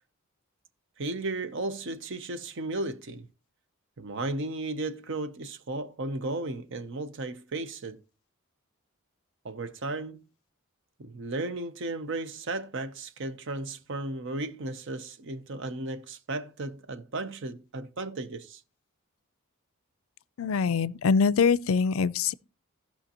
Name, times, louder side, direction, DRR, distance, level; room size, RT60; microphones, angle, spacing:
voice 1, 1.0-3.3 4.0-8.0 9.4-10.2 11.0-18.6, right 2 dB, 60° right, 0.7 m, -35 dB
voice 2, 20.4-22.3, left 5 dB, 70° left, 0.4 m, -24 dB
17.0 x 5.7 x 2.9 m
head